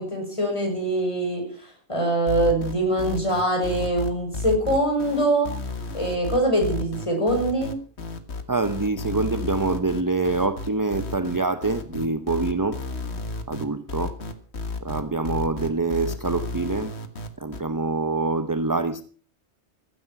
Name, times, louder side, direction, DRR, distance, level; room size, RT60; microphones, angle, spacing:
voice 1, 0.0-5.5 5.9-7.7, right 1 dB, 25° left, 6.0 m, -23 dB
sound 1, 2.3-17.6, left 3 dB, 65° left, 1.9 m, -32 dB
voice 2, 8.5-12.8 13.5-14.2 14.8-16.9 17.4-19.0, right 3 dB, 20° right, 0.7 m, -25 dB
15.5 x 13.0 x 5.8 m
omnidirectional pair, 1.2 m